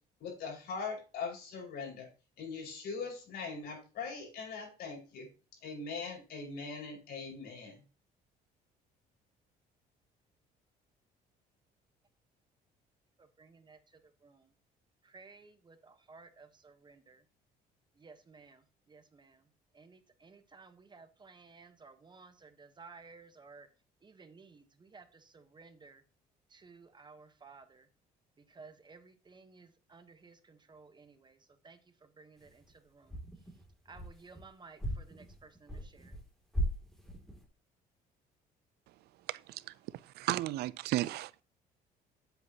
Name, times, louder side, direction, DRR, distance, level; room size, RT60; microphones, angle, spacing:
voice 1, 0.2-2.1 2.4-5.3 5.6-7.8, left 4 dB, 70° left, 5.0 m, -41 dB
voice 2, 13.4-13.8 14.2-14.5 15.0-17.2 18.0-18.6 18.9-19.4 19.7-23.7 24.0-26.0 26.5-27.9 28.5-31.4 31.6-33.2 33.8-36.2, right 4 dB, 25° right, 1.0 m, -56 dB
sound 1, 32.4-32.7 33.1-34.5 34.8-36.2 36.5-37.4, equal, ahead, 2.5 m, -38 dB
voice 3, 39.3-39.7 40.0-41.4, right 16 dB, 75° right, 0.4 m, -34 dB
9.5 x 7.9 x 2.8 m
cardioid pair, 110°, 17 cm